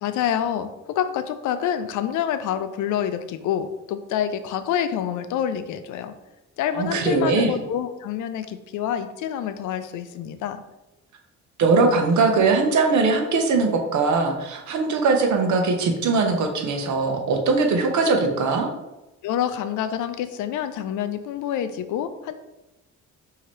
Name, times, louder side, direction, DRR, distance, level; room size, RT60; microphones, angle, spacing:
voice 1, 0.0-6.1 6.6-10.6 19.2-22.3, left 9 dB, 80° left, 11 dB, 0.5 m, -27 dB
voice 2, 6.7-7.5 11.6-18.7, right 4 dB, 70° right, 3 dB, 0.9 m, -21 dB
5.7 x 2.8 x 3.1 m, 0.99 s
cardioid pair, 90°, 30 cm